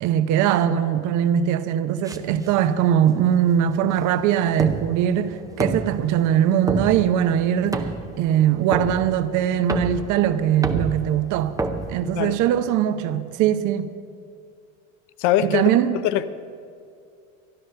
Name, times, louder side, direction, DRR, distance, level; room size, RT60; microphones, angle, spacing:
voice 1, 0.0-7.8 8.2-11.6 11.9-13.9 15.4-16.0, right 10 dB, 50° right, 0.9 m, -21 dB
sound 1, 2.1-12.7, right 3 dB, 10° right, 0.6 m, -31 dB
voice 2, 15.2-15.7 16.0-16.2, left 12 dB, 50° left, 0.7 m, -21 dB
13.0 x 11.0 x 6.7 m
supercardioid pair, 115°, 40 cm